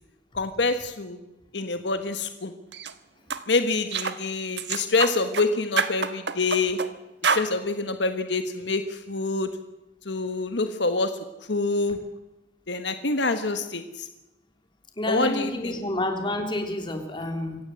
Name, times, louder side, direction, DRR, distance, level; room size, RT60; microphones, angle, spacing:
voice 1, 0.3-1.2 1.5-2.5 3.5-6.8 7.2-9.5 10.0-11.1 11.5-12.0 12.7-14.1 15.1-15.8, left 3 dB, 75° left, 9 dB, 1.4 m, -26 dB
sound 1, 2.7-2.9 3.3-3.4 3.9-4.2 4.6-5.5 5.8-6.9 7.2-7.5, right 5 dB, 70° right, 1.3 m, -27 dB
voice 2, 15.0-17.6, left 1 dB, 25° left, 4 dB, 3.5 m, -29 dB
26.0 x 16.5 x 7.8 m, 1.0 s
head